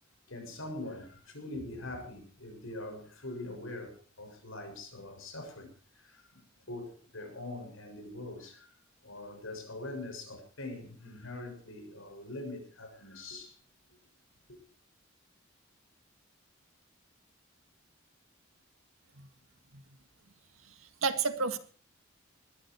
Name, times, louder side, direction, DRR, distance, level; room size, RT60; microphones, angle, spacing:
voice 1, 0.3-8.8 9.0-13.6 14.5-14.6, left 2 dB, 80° left, 6.9 m, -43 dB
voice 2, 21.0-21.6, right 5 dB, 90° right, 2.0 m, -30 dB
21.5 x 13.0 x 4.7 m
head